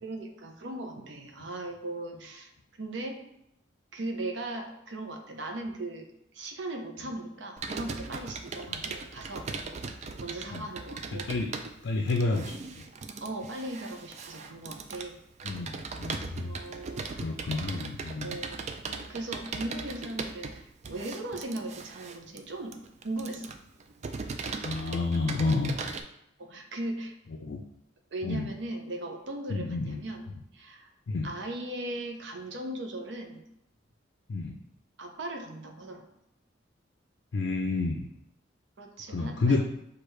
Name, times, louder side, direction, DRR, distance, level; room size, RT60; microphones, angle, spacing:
voice 1, 0.0-2.5 2.8-3.2 3.9-6.1 6.3-9.5 10.2-11.3 13.2-15.2 16.4-17.9 18.2-22.8 23.0-23.4 26.4-27.1 28.1-30.3 30.5-30.9 31.2-33.4 35.0-36.0 38.8-39.6, right 1 dB, 70° right, 3 dB, 0.7 m, -38 dB
Computer keyboard, 7.6-26.0, right 4 dB, 35° right, 0.3 m, -39 dB
voice 2, 11.1-11.5 11.8-12.5 15.4-16.6 17.2-18.4 24.6-25.9 27.4-27.6 28.2-28.5 29.5-30.0 31.1-31.3 34.3-34.5 37.3-38.1 39.1-39.7, left 3 dB, 65° left, 2 dB, 0.4 m, -30 dB
6.3 x 2.4 x 3.2 m, 0.80 s
head